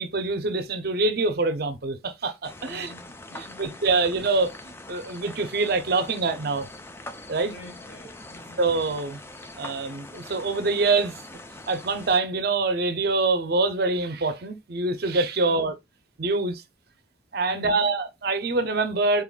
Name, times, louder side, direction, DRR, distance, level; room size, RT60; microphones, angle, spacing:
voice 1, 0.0-2.9 3.3-4.5 4.9-6.7 7.3-7.5 8.6-9.2 9.6-11.2 11.7-15.7 16.2-16.6 17.3-19.2, right 3 dB, 50° right, 0.6 m, -25 dB
sound 1, 2.4-12.2, left 2 dB, 10° left, 0.3 m, -43 dB
voice 2, 2.6-4.0 4.3-4.4 7.4-8.6 15.4-15.7 17.5-17.9, left 2 dB, 70° left, 1.7 m, -47 dB
4.3 x 3.6 x 2.3 m
head